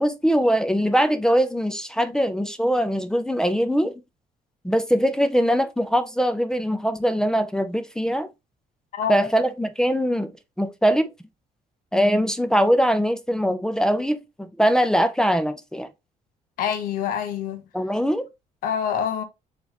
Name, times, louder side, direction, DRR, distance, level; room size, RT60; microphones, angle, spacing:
voice 1, 0.0-3.9 4.6-8.3 9.1-10.3 10.6-11.1 11.9-15.9 17.7-18.3, equal, 5° left, 0.3 m, -22 dB
voice 2, 8.9-9.3 16.6-17.6 18.6-19.2, left 8 dB, 80° left, 0.8 m, -26 dB
3.9 x 2.9 x 2.9 m
cardioid pair, 160°, 14 cm